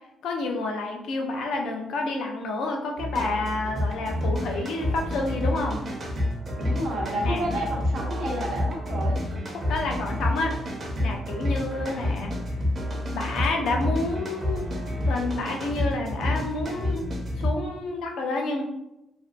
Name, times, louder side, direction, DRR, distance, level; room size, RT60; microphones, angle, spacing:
voice 1, 0.2-5.8 7.3-7.5 9.6-10.6 11.0-12.3 13.1-14.7 15.0-17.0 17.4-18.6, left 2 dB, 75° left, 2 dB, 0.5 m, -29 dB
sound 1, 3.0-17.5, left 1 dB, 40° right, 0.6 m, -29 dB
voice 2, 6.6-9.2, right 1 dB, 75° right, -2 dB, 0.8 m, -30 dB
2.5 x 2.1 x 2.4 m, 0.90 s
cardioid pair, 110°, 0 cm